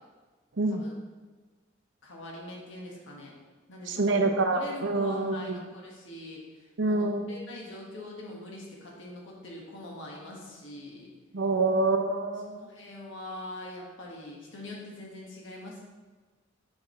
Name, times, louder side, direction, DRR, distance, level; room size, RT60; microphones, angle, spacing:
voice 1, 2.0-3.3 3.7-11.1 12.5-15.8, left 1 dB, 75° left, -2 dB, 1.5 m, -43 dB
voice 2, 3.9-5.6 6.8-7.3 11.3-12.6, right 2 dB, 70° right, 5 dB, 0.7 m, -26 dB
7.2 x 4.9 x 3.2 m, 1.3 s
head